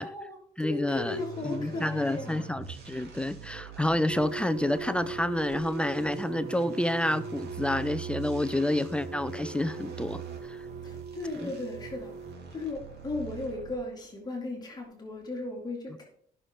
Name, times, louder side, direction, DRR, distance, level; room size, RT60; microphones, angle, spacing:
voice 1, 0.0-2.4 10.8-16.0, left 2 dB, 25° left, 2.8 m, -36 dB
voice 2, 0.6-1.2 1.4-10.2 10.5-10.6 11.4-11.5, left 1 dB, 5° left, 0.5 m, -29 dB
sound 1, 1.0-13.9, right 6 dB, 75° right, 3.2 m, -44 dB
sound 2, 4.1-12.4, right 5 dB, 45° right, 0.5 m, -40 dB
14.0 x 6.6 x 3.7 m
cardioid pair, 110°, 17 cm